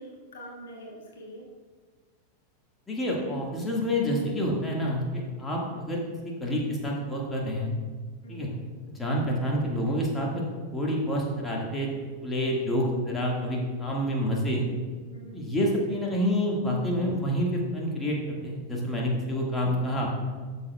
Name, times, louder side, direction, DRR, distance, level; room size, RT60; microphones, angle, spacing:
voice 1, 0.0-1.4 5.6-5.8 8.2-8.6 9.2-9.5 15.1-15.4, equal, 65° left, -1 dB, 1.5 m, -45 dB
voice 2, 2.9-7.7 8.3-8.5 8.9-10.4 10.7-11.9 12.2-14.7 15.3-18.2 18.4-20.1, equal, 15° left, -3 dB, 1.7 m, -28 dB
13.0 x 6.6 x 2.3 m, 1.5 s
figure-of-eight pair, 90°, 0 cm